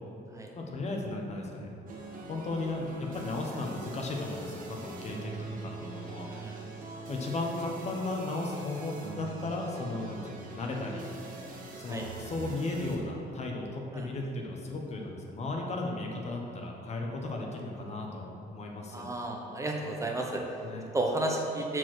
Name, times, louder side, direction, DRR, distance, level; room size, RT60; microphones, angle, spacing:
voice 1, 0.5-1.7 2.2-6.3 7.1-11.1 11.8-19.1 20.6-20.8, left 2 dB, 40° left, 0 dB, 1.2 m, -35 dB
sound 1, 1.9-13.0, right 3 dB, 55° right, 1.6 m, -43 dB
voice 2, 6.3-6.7 11.9-12.1 13.9-14.1 18.9-20.4 20.9-21.8, right 1 dB, 20° right, 0 dB, 0.9 m, -32 dB
6.9 x 4.6 x 6.2 m, 2.8 s
cardioid pair, 110°, 17 cm